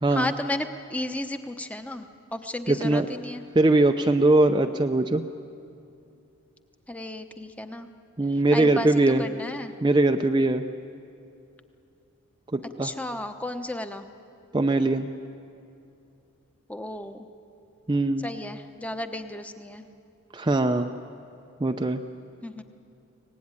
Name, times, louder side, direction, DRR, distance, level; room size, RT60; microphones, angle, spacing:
voice 1, 0.1-3.4 6.9-7.9 8.5-9.7 12.8-14.1 16.7-17.3 18.2-19.8 22.4-22.6, left 1 dB, 5° left, 7 dB, 0.9 m, -33 dB
voice 2, 2.7-3.1 3.6-5.2 8.2-9.2 9.8-10.6 12.5-12.9 14.5-15.1 17.9-18.3 20.3-20.9 21.6-22.0, right 2 dB, 20° right, 6 dB, 0.5 m, -21 dB
24.5 x 18.5 x 9.7 m, 2.7 s
head